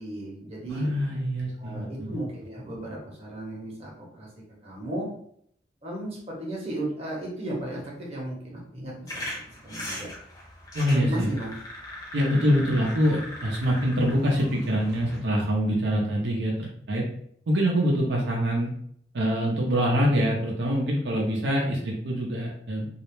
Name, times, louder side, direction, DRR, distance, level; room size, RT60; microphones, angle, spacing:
voice 1, 0.0-0.9 1.6-4.3 4.6-5.1 5.8-9.3 9.6-10.1 10.8-11.5, right 1 dB, 35° right, -5 dB, 0.8 m, -35 dB
voice 2, 0.7-2.1 10.7-11.3 12.1-17.0 17.5-18.7 19.1-22.9, equal, 80° right, -2 dB, 0.5 m, -25 dB
sound 1, 9.1-15.2, left 1 dB, 20° left, 0.7 m, -39 dB
2.4 x 2.0 x 3.0 m, 0.67 s
head